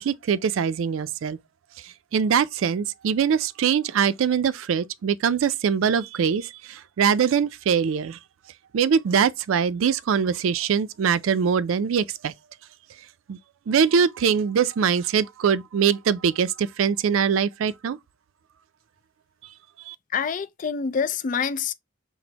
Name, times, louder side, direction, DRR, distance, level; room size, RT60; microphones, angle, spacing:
voice 1, 0.0-1.4 2.1-8.2 8.7-12.3 13.3-13.4 13.7-18.0 19.9-20.0, right 7 dB, 85° right, 0.4 m, -23 dB
voice 2, 20.1-21.7, left 6 dB, 40° left, 0.4 m, -26 dB
6.0 x 2.1 x 2.8 m
head